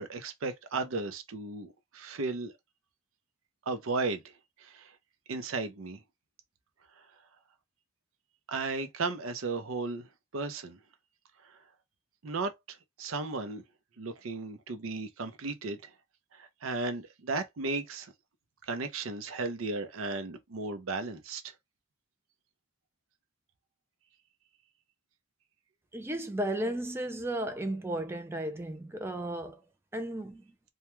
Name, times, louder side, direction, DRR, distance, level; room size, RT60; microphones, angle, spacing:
voice 1, 0.0-2.5 3.7-4.3 4.6-5.0 5.3-6.0 8.5-10.1 10.3-10.8 11.4-11.6 12.2-13.6 14.0-15.9 16.3-18.1 18.7-21.5, right 3 dB, 85° right, 0.6 m, -35 dB
voice 2, 25.9-29.6 29.9-30.4, right 1 dB, 10° right, 0.4 m, -34 dB
2.3 x 2.2 x 2.9 m
head